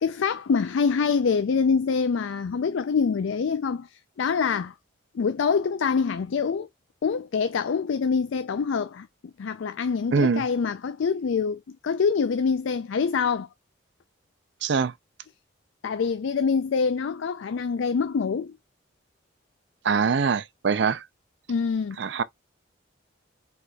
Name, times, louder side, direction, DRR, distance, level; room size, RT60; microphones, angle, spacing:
voice 1, 0.0-4.7 5.1-6.7 7.0-9.1 9.4-13.5 15.8-18.6 21.5-22.0, left 5 dB, 75° left, 0.4 m, -25 dB
voice 2, 10.1-10.4 14.6-14.9 19.8-21.0 22.0-22.2, right 5 dB, 60° right, 0.4 m, -23 dB
4.8 x 4.1 x 2.3 m
head